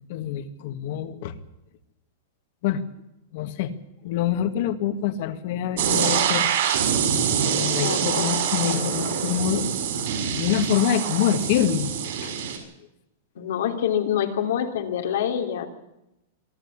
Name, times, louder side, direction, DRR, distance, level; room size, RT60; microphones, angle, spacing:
voice 1, 0.1-1.3 2.6-2.8 3.3-3.7 4.0-6.5 7.5-9.7 10.4-11.9 12.2-12.3, left 10 dB, 50° left, 10 dB, 2.0 m, -25 dB
sound 1, 5.8-12.6, right 7 dB, 65° right, 6.3 m, -25 dB
voice 2, 7.6-8.3 13.4-15.7, left 9 dB, 80° left, 3 dB, 3.3 m, -26 dB
24.5 x 12.0 x 9.9 m, 0.88 s
supercardioid pair, 160°, 0 cm